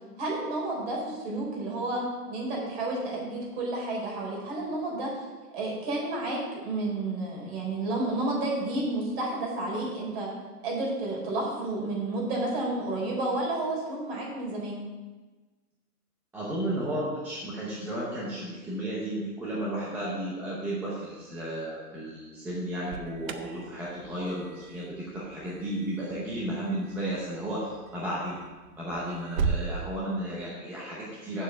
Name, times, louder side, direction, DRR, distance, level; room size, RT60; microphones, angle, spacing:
voice 1, 0.2-5.2 5.5-10.3 10.6-14.8, right 2 dB, 40° right, -2 dB, 4.1 m, -31 dB
voice 2, 16.3-28.4 28.8-31.4, right 1 dB, 5° right, -6 dB, 0.7 m, -33 dB
Alarm, 22.6-29.7, right 5 dB, 60° right, 1.0 m, -37 dB
7.4 x 7.1 x 7.9 m, 1.3 s
hypercardioid pair, 165°, 47 cm